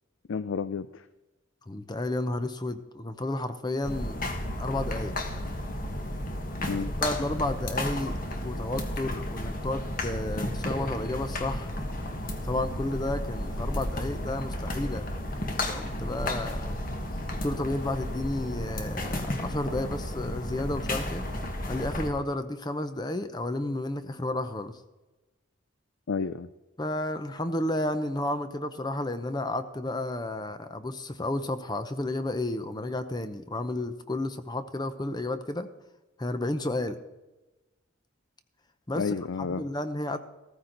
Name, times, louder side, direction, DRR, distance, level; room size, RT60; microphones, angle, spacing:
voice 1, 0.3-1.0 6.7-7.0 26.1-26.5 39.0-39.6, left 5 dB, 80° left, 14 dB, 0.5 m, -31 dB
voice 2, 1.7-4.3 4.6-5.1 6.7-8.2 8.4-11.7 12.5-15.1 15.7-16.8 17.4-21.3 21.7-24.8 26.8-35.7 36.2-37.0 38.9-40.2, left 1 dB, 20° left, 10 dB, 0.7 m, -32 dB
sound 1, 3.8-22.1, left 1 dB, 45° left, 1.6 m, -33 dB
15.0 x 14.5 x 4.0 m, 1.1 s
head